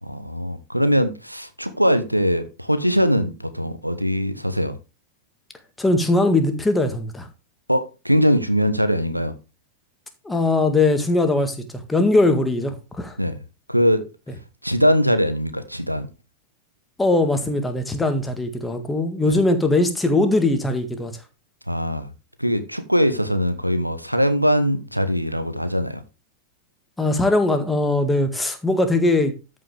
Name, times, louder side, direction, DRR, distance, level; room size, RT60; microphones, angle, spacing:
voice 1, 0.0-4.7 7.7-9.3 13.2-13.4 13.7-14.0 14.6-16.1 19.3-19.4 21.7-22.1 22.4-26.0, equal, 90° right, 1.0 m, -21 dB
voice 2, 5.8-7.3 10.2-13.2 17.0-21.1 27.0-29.3, left 2 dB, 10° left, 1.9 m, -20 dB
13.5 x 5.6 x 3.4 m
figure-of-eight pair, 90°, 0 cm